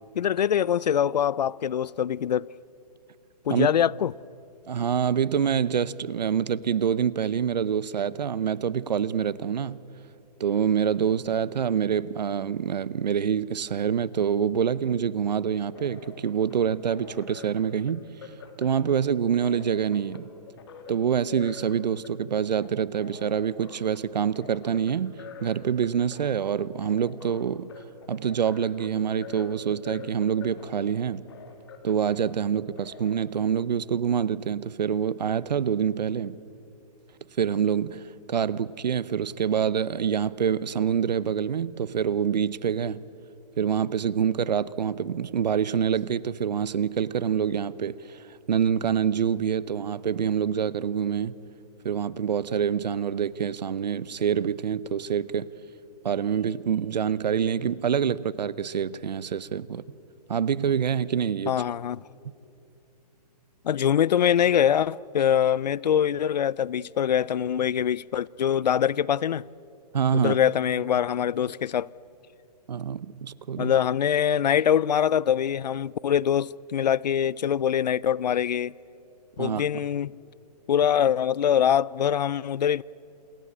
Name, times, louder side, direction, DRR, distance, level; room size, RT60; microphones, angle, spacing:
voice 1, 0.2-2.5 3.5-4.1 61.5-62.0 63.6-69.4 70.1-71.9 73.6-78.7 79.4-80.2 80.7-82.8, left 9 dB, 80° left, 0.5 m, -23 dB
voice 2, 4.7-9.8 10.4-18.3 18.6-20.3 20.9-25.1 25.4-27.7 28.1-31.3 31.8-36.4 37.4-43.0 43.6-51.4 51.8-55.5 56.0-59.8 60.3-61.6 69.9-70.4 72.7-73.7 79.4-79.6, right 8 dB, 80° right, 0.8 m, -26 dB
sound 1, 15.5-33.3, left 4 dB, 35° left, 2.5 m, -47 dB
27.5 x 21.5 x 8.7 m
hypercardioid pair, 175°, 21 cm